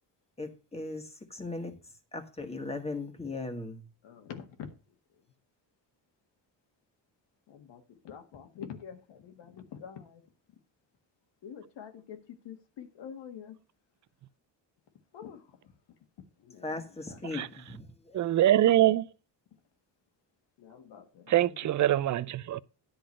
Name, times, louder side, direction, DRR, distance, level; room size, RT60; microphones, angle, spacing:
voice 1, 0.4-1.7 2.1-3.8 16.6-18.3, left 2 dB, 15° left, 1.7 m, -38 dB
voice 2, 4.0-4.7 7.5-10.2 11.4-12.2 12.4-13.6 15.1-15.4 16.4-16.8 17.1-17.2 20.6-21.7, left 8 dB, 80° left, 1.8 m, -46 dB
voice 3, 18.1-19.1 21.3-22.6, right 13 dB, 45° right, 0.5 m, -24 dB
10.5 x 3.9 x 7.5 m
cardioid pair, 105°, 42 cm